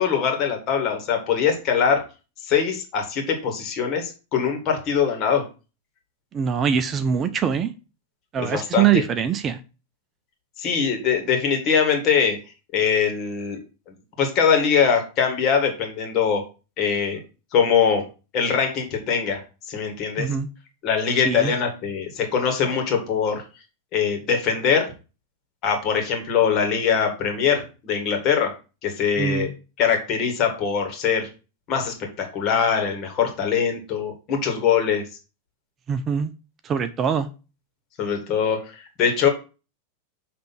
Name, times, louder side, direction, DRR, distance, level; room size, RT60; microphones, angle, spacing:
voice 1, 0.0-2.1 2.4-5.5 8.4-9.0 10.6-12.4 12.7-13.6 14.2-16.4 16.8-17.2 17.5-18.1 18.3-19.4 19.7-20.3 20.8-23.4 23.9-24.9 25.6-28.5 28.8-29.5 29.8-31.3 31.7-35.1 38.0-39.3, left 7 dB, 35° left, 4 dB, 2.0 m, -22 dB
voice 2, 6.3-7.7 8.3-9.6 20.2-20.5 21.2-21.5 29.2-29.5 35.9-36.3 36.6-37.3, right 8 dB, 25° right, 11 dB, 0.5 m, -23 dB
6.7 x 3.3 x 5.9 m, 0.31 s
figure-of-eight pair, 90°, 0 cm